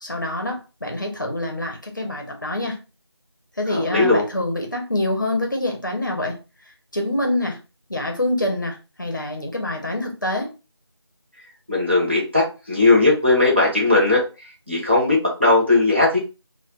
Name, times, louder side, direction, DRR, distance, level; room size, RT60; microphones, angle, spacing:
voice 1, 0.0-2.8 3.6-6.4 6.9-7.6 7.9-10.5, left 1 dB, 45° left, 2 dB, 0.7 m, -26 dB
voice 2, 3.7-4.2 11.7-14.2 14.7-16.2, left 2 dB, 25° right, -4 dB, 0.7 m, -18 dB
2.3 x 2.1 x 3.9 m, 0.30 s
figure-of-eight pair, 175°, 14 cm